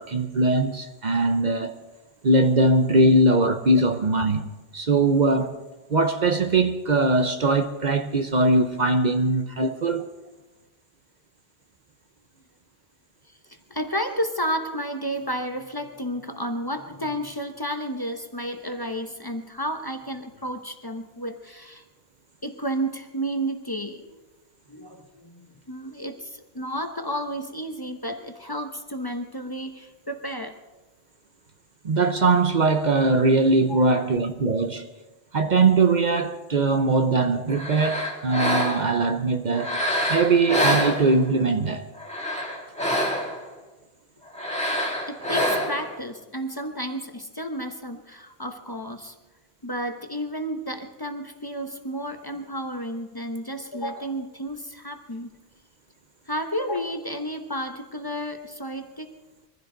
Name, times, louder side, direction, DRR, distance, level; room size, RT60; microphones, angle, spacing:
voice 1, 0.0-1.8 2.2-5.6 5.9-10.1 31.8-34.9 35.3-39.8 40.1-41.9, right 3 dB, 50° right, 0.8 m, -21 dB
voice 2, 13.3-21.8 22.4-24.2 24.7-30.6 33.7-33.8 45.1-49.1 49.6-55.3 56.3-59.2, equal, 25° left, 1.0 m, -32 dB
sound 1, 37.5-39.0 39.6-41.4 42.0-43.5 44.3-45.9, equal, 5° left, 2.3 m, -26 dB
23.0 x 15.0 x 3.9 m
omnidirectional pair, 1.0 m